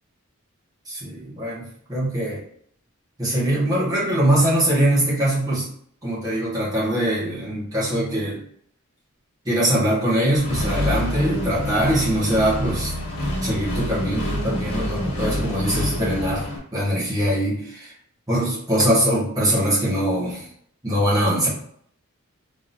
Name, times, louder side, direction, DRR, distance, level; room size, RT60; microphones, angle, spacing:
voice 1, 0.8-2.4 3.2-5.7 6.0-8.4 9.4-12.9 13.4-16.5 16.7-17.9 18.3-20.5 20.8-21.5, right 1 dB, 15° right, -8 dB, 1.5 m, -22 dB
Accelerating revving vroom, 10.4-16.6, left 1 dB, 75° left, 1.3 m, -26 dB
3.8 x 3.5 x 2.7 m, 0.64 s
head